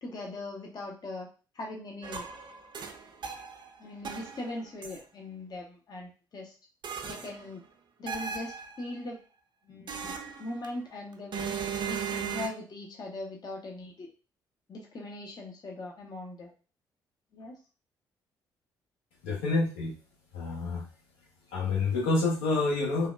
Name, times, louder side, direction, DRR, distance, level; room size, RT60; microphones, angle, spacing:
voice 1, 0.0-1.3 1.5-2.3 3.8-6.5 7.0-7.6 8.0-9.2 9.6-10.1 10.4-11.5 11.9-14.1 14.7-16.5 17.3-17.5, left 2 dB, 40° left, 0 dB, 0.7 m, -40 dB
sound 1, 2.0-3.7 4.0-5.0 6.8-7.5 8.1-8.9 9.9-10.7 11.3-12.5, right 6 dB, 45° right, 0.5 m, -37 dB
voice 2, 19.2-19.9 20.3-20.8 21.5-23.1, left 3 dB, 75° left, -3 dB, 1.0 m, -28 dB
3.3 x 2.1 x 2.2 m, 0.35 s
hypercardioid pair, 45°, 11 cm